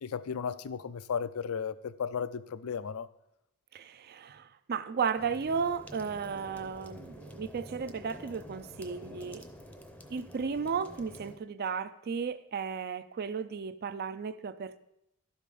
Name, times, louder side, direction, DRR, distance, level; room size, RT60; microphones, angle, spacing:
voice 1, 0.0-3.1, left 6 dB, 70° left, 0.4 m, -35 dB
voice 2, 3.7-9.5 10.1-14.8, right 6 dB, 45° right, 0.4 m, -34 dB
sound 1, 5.2-11.4, equal, 5° left, 0.6 m, -48 dB
11.5 x 5.0 x 5.3 m
head